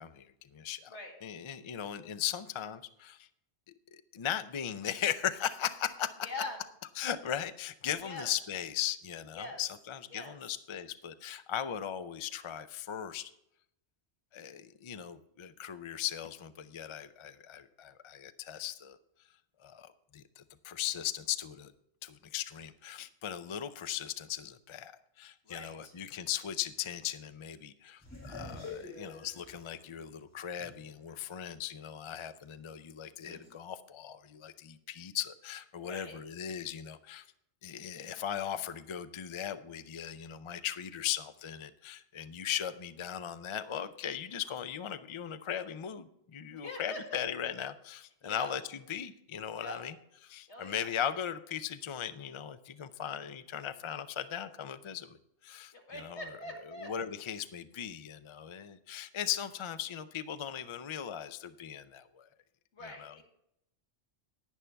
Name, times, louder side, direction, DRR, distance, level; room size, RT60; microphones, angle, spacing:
voice 1, 0.0-3.3 3.9-6.3 7.0-13.3 14.3-19.0 19.6-21.7 22.0-24.9 25.2-37.2 37.6-48.6 48.9-49.9 50.2-55.2 55.4-56.2 56.8-62.3 62.8-63.2, left 10 dB, 40° left, 12 dB, 0.4 m, -38 dB
voice 2, 6.2-6.6 8.0-8.3 9.3-9.6 10.1-10.4 25.4-25.9 35.8-36.2 46.5-47.2 48.2-48.5 49.6-49.8 50.5-50.9 55.7-56.9 62.7-63.2, left 1 dB, 85° left, 0 dB, 2.5 m, -43 dB
sound 1, 28.0-31.1 31.6-31.7 33.2-33.5, left 3 dB, 15° left, 2.7 m, -46 dB
10.5 x 10.0 x 3.4 m, 0.78 s
omnidirectional pair, 1.1 m